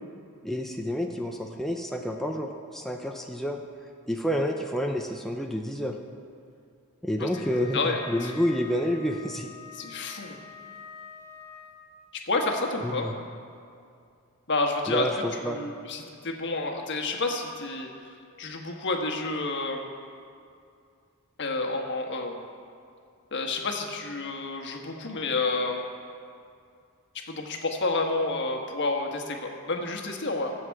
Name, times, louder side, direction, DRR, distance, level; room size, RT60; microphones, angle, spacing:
voice 1, 0.4-3.6 4.1-6.0 7.0-9.5 12.8-13.1 14.9-15.6, equal, ahead, 1 dB, 0.6 m, -29 dB
Wind instrument woodwind instrument, 7.3-12.0, left 6 dB, 85° left, 1.5 m, -46 dB
voice 2, 7.7-8.3 9.8-10.4 12.2-13.1 14.5-15.1 15.4-17.9 18.4-19.9 21.4-22.4 23.3-25.8 27.3-30.5, left 3 dB, 55° left, 2 dB, 1.4 m, -29 dB
20.0 x 7.8 x 4.7 m, 2.4 s
head